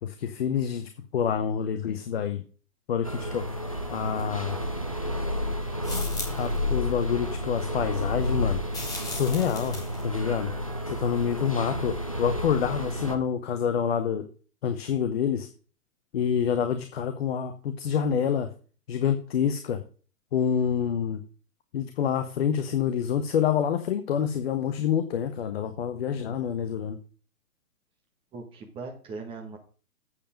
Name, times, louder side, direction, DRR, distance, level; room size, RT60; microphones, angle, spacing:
voice 1, 0.0-2.4 2.9-3.5 3.9-4.6 6.4-8.6 9.1-10.5 10.9-14.3 14.6-15.5 16.1-18.5 18.9-19.8 20.3-21.2 21.7-27.0, left 8 dB, 40° left, 8 dB, 0.9 m, -27 dB
sound 1, 3.0-13.2, left 1 dB, 25° left, 0.3 m, -31 dB
sound 2, 5.8-6.6 8.7-10.0, left 2 dB, 10° left, 2.0 m, -37 dB
voice 2, 28.3-29.6, right 4 dB, 10° right, 1 dB, 1.5 m, -39 dB
8.5 x 7.0 x 5.2 m, 0.39 s
hypercardioid pair, 150°, 46 cm